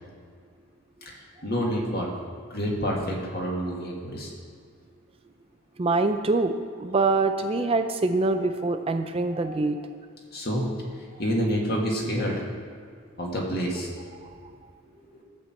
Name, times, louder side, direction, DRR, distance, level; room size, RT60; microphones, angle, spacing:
voice 1, 1.0-2.1 2.5-4.3 10.3-10.6 11.2-12.5 13.2-13.9 15.1-15.2, equal, 45° left, -2 dB, 1.9 m, -28 dB
voice 2, 5.8-9.9, right 3 dB, 25° right, 7 dB, 0.4 m, -24 dB
13.0 x 4.5 x 7.6 m, 2.1 s
head